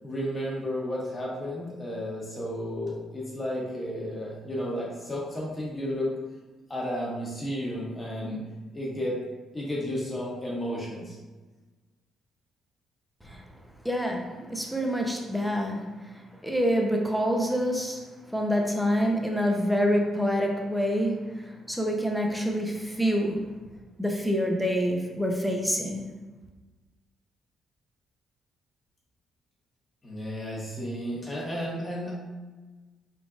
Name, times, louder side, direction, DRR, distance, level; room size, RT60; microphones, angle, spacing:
voice 1, 0.0-6.1 6.7-8.4 8.7-9.2 9.5-11.2 30.0-32.2, equal, 25° left, -5 dB, 1.1 m, -32 dB
voice 2, 13.8-15.9 16.1-23.5 24.0-26.0, equal, ahead, 1 dB, 0.6 m, -27 dB
3.8 x 3.7 x 2.4 m, 1.2 s
cardioid pair, 90°, 0 cm